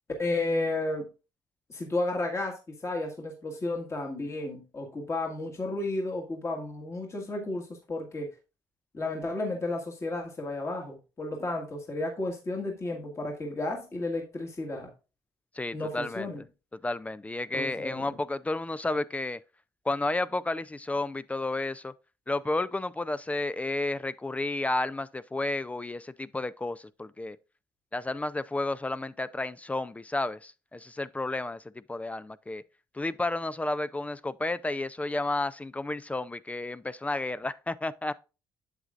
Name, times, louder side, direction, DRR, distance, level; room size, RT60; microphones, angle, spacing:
voice 1, 0.2-1.1 1.7-8.3 8.9-14.9 15.7-16.4 17.5-18.1, left 2 dB, 30° left, 1.7 m, -32 dB
voice 2, 15.5-16.3 16.8-19.4 19.9-21.9 22.3-27.4 27.9-31.6 31.9-32.6 32.9-38.1, left 2 dB, 15° left, 0.3 m, -32 dB
8.1 x 7.4 x 2.5 m
cardioid pair, 90°, 10 cm